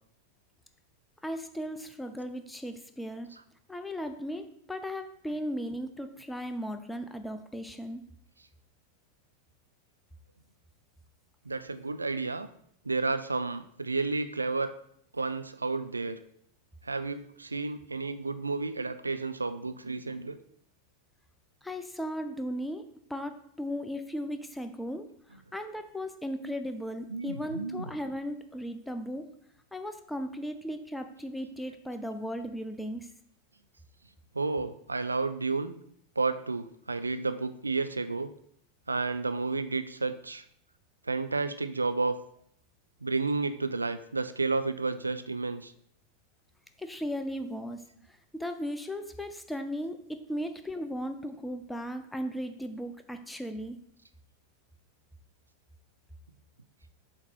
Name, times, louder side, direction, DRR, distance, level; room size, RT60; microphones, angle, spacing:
voice 1, 1.2-3.3 3.7-8.0 21.6-25.1 25.5-29.3 29.7-33.1 46.8-47.8 48.1-53.8, equal, 5° left, 7 dB, 0.5 m, -36 dB
voice 2, 11.5-12.5 12.8-14.7 15.1-16.2 16.8-20.4 25.3-25.4 27.1-27.9 34.3-35.8 36.2-38.3 38.9-40.4 41.1-42.2 43.0-45.7, right 3 dB, 80° right, 11 dB, 0.4 m, -31 dB
7.4 x 2.9 x 4.5 m, 0.69 s
figure-of-eight pair, 90°, 0 cm